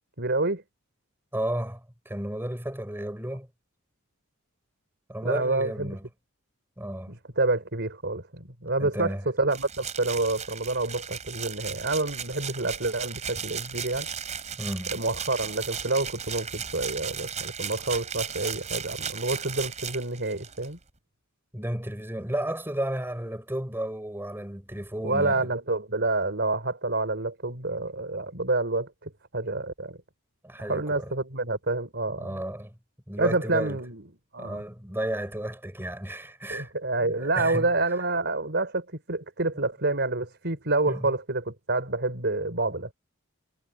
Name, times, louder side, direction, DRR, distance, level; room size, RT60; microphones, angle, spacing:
voice 1, 0.2-0.6 5.2-6.0 7.1-14.1 14.9-20.8 25.0-30.0 30.6-32.3 33.2-34.0 34.3-34.6 36.5-42.9, right 2 dB, 50° right, 5.1 m, -28 dB
voice 2, 1.3-3.5 5.1-6.1 6.8-7.2 8.8-9.2 14.6-15.0 21.5-25.5 30.4-31.1 32.2-32.8 33.1-33.8 34.4-36.7 37.0-37.7 40.9-41.1, right 1 dB, 10° right, 5.8 m, -33 dB
sound 1, 9.5-20.7, right 7 dB, 35° right, 3.9 m, -36 dB
head